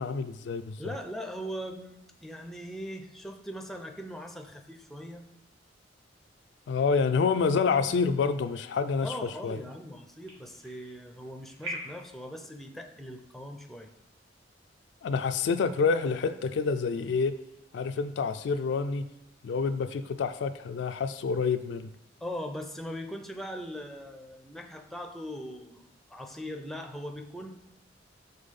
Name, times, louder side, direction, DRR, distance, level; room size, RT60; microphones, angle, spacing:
voice 1, 0.0-0.8 6.7-9.1 9.4-9.6 15.0-17.3 17.7-19.0 19.4-21.9, left 5 dB, 65° left, 10 dB, 0.3 m, -27 dB
voice 2, 0.8-5.2 9.0-13.9 22.2-27.5, equal, ahead, 4 dB, 0.5 m, -40 dB
sound 1, 6.8-12.1, equal, 85° right, 1.9 m, -46 dB
5.5 x 4.0 x 5.2 m, 0.84 s
head